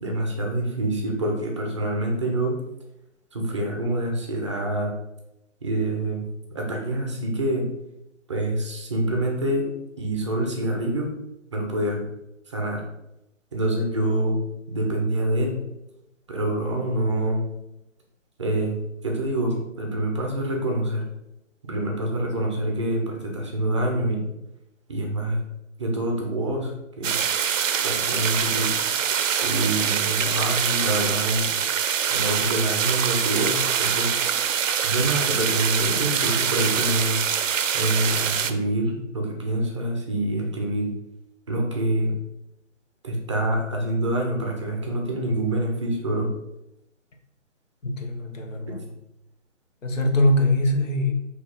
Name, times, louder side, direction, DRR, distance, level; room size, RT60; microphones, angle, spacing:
voice 1, 0.0-2.6 3.3-4.9 5.6-6.3 6.5-7.7 8.3-9.7 10.0-11.1 11.5-12.0 12.5-12.8 13.5-15.6 16.3-17.5 18.4-21.0 21.6-24.2 24.9-25.4 25.8-27.2 27.8-28.7 29.4-31.5 32.1-34.1 34.8-37.2 37.7-40.9 41.5-42.2 43.0-46.3, right 1 dB, 25° right, 0 dB, 0.5 m, -26 dB
sound 1, 27.0-38.5, right 8 dB, 80° right, 0.5 m, -24 dB
voice 2, 47.8-48.9 49.8-51.1, left 1 dB, 75° left, 3 dB, 1.0 m, -22 dB
4.1 x 2.8 x 3.8 m, 0.90 s
hypercardioid pair, 150°, 38 cm